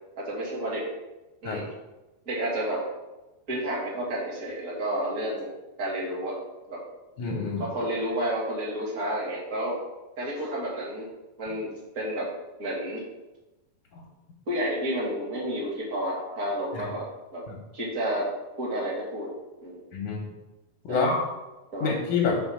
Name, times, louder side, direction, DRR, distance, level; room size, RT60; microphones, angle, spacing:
voice 1, 0.1-0.8 1.4-1.6 2.2-2.8 3.5-5.5 5.8-6.4 6.7-6.8 7.6-9.8 10.2-11.1 11.4-12.3 12.6-13.0 14.5-17.4 17.7-18.3 18.6-19.3 19.6-19.8 20.9-21.1 21.7-21.9, right 1 dB, 30° right, -6 dB, 1.6 m, -30 dB
voice 2, 7.2-7.7 13.9-14.0 16.7-16.9 17.5-17.6 19.9-20.2 20.9-21.2 21.8-22.4, left 4 dB, 75° left, -1 dB, 1.9 m, -27 dB
6.1 x 4.2 x 6.2 m, 1.1 s
omnidirectional pair, 4.6 m